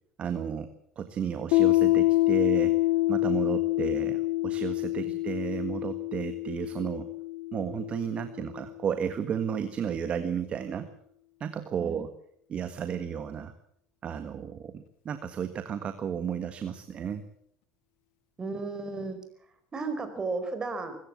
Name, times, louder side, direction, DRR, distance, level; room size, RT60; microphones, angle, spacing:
voice 1, 0.2-2.8 3.1-7.1 7.5-10.9 11.4-12.1 12.5-13.5 14.0-17.2, right 8 dB, 40° right, 9 dB, 1.7 m, -33 dB
Piano, 1.5-8.8, left 19 dB, 80° left, 0.9 m, -27 dB
voice 2, 18.4-19.2 19.7-21.0, right 3 dB, 25° right, 9 dB, 4.9 m, -34 dB
24.0 x 15.0 x 7.5 m, 0.67 s
supercardioid pair, 115°, 3 cm